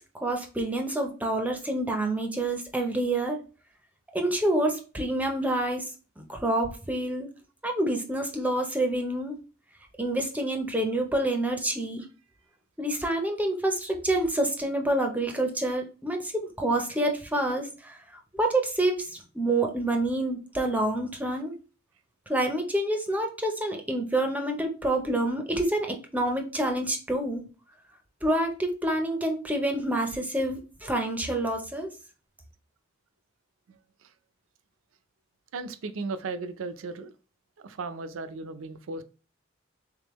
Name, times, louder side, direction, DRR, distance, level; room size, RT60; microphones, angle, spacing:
voice 1, 0.1-3.4 4.1-5.9 6.2-7.3 7.6-9.4 10.0-12.1 12.8-18.0 18.4-21.5 22.3-27.4 28.2-31.9, right 1 dB, 10° right, 3 dB, 0.5 m, -27 dB
voice 2, 33.7-34.1 35.5-37.1 37.6-39.0, right 3 dB, 85° right, 11 dB, 0.5 m, -36 dB
3.6 x 3.6 x 3.0 m, 0.35 s
head